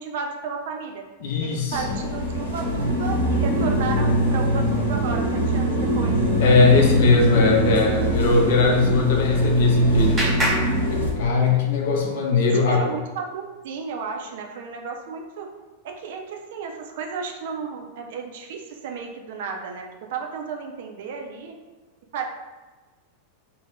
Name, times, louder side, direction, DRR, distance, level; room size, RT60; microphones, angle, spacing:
voice 1, 0.0-1.1 1.4-6.2 10.6-11.4 12.3-15.5 15.8-21.6 22.1-22.3, right 5 dB, 55° right, 3 dB, 0.4 m, -33 dB
voice 2, 1.2-2.0 6.4-10.2 10.6-10.7 11.2-12.9, left 4 dB, 55° left, 1 dB, 0.5 m, -20 dB
sound 1, 1.7-11.1, equal, 85° left, 0.7 m, -22 dB
Clapping, 9.0-11.7, right 1 dB, 15° right, 0.8 m, -30 dB
2.4 x 2.0 x 3.4 m, 1.3 s
figure-of-eight pair, 90°, 0 cm